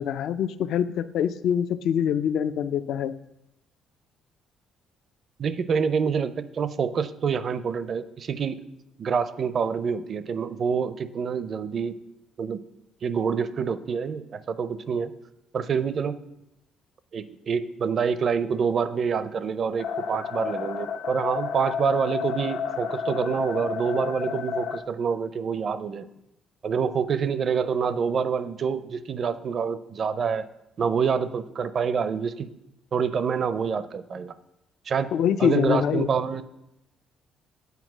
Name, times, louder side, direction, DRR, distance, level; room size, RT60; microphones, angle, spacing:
voice 1, 0.0-3.2 35.1-36.1, left 9 dB, 70° left, 13 dB, 0.4 m, -24 dB
voice 2, 5.4-8.6 9.0-12.0 12.4-12.6 13.0-15.1 15.5-16.2 17.1-26.1 26.6-30.5 30.8-32.5 32.9-34.3 34.9-35.1 35.4-36.4, right 6 dB, 45° right, 13 dB, 0.5 m, -27 dB
sound 1, 19.8-24.8, left 6 dB, 90° left, 0.8 m, -31 dB
8.2 x 4.5 x 6.1 m, 0.86 s
cardioid pair, 105°, 0 cm